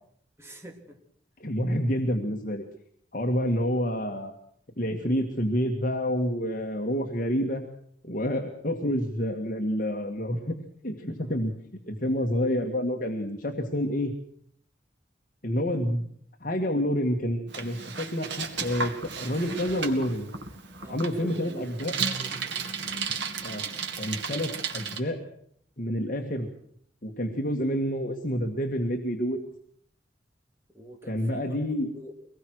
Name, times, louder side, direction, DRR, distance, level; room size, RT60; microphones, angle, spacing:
voice 1, 0.4-1.0 11.2-11.3 20.8-23.1 30.7-32.1, equal, 15° right, 2 dB, 3.4 m, -47 dB
voice 2, 1.4-2.6 3.1-4.3 4.8-7.6 8.0-10.6 10.8-11.5 11.9-14.1 15.4-16.1 16.4-20.3 20.9-21.9 23.4-23.6 24.0-25.2 25.8-26.5 27.0-29.4 31.1-31.9, equal, 50° left, 2 dB, 2.0 m, -28 dB
Bicycle, 17.5-25.0, right 5 dB, 90° right, 2.3 m, -34 dB
24.0 x 19.5 x 6.3 m, 0.65 s
head